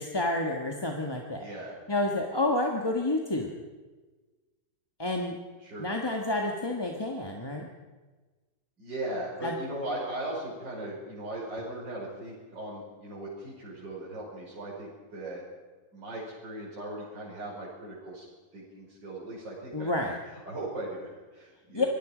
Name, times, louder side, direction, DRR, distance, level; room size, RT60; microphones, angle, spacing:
voice 1, 0.0-1.4 1.9-3.5 5.0-5.3 5.8-7.7 9.4-9.6 19.7-20.2 21.7-21.9, left 2 dB, 15° left, 1 dB, 1.4 m, -29 dB
voice 2, 1.4-1.7 5.6-5.9 8.8-15.4 15.9-18.3 18.5-19.9 20.3-21.9, right 1 dB, 80° right, -5 dB, 6.0 m, -38 dB
25.5 x 20.0 x 5.1 m, 1.3 s
omnidirectional pair, 1.9 m